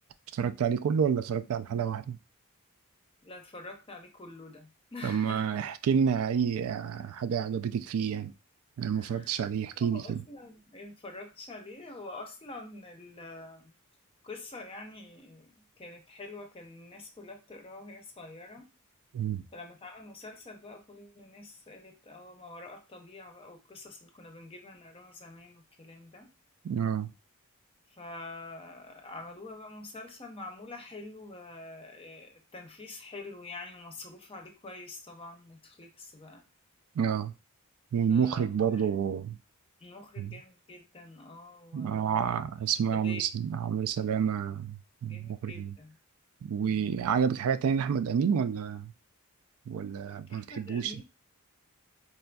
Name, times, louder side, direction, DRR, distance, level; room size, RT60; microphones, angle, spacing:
voice 1, 0.3-2.2 5.0-8.3 8.8-10.2 19.1-19.5 26.6-27.1 37.0-37.3 37.9-39.4 40.2-40.3 41.7-45.7 46.4-48.9 49.7-51.0, right 7 dB, 70° right, 0.3 m, -29 dB
voice 2, 3.2-5.6 8.9-9.3 9.9-13.7 14.2-18.7 19.5-26.3 27.9-36.4 38.1-38.9 39.8-42.2 42.9-43.2 45.1-46.0 46.7-47.0 50.3-51.0, left 2 dB, 25° left, 0.6 m, -46 dB
4.3 x 2.4 x 2.2 m
head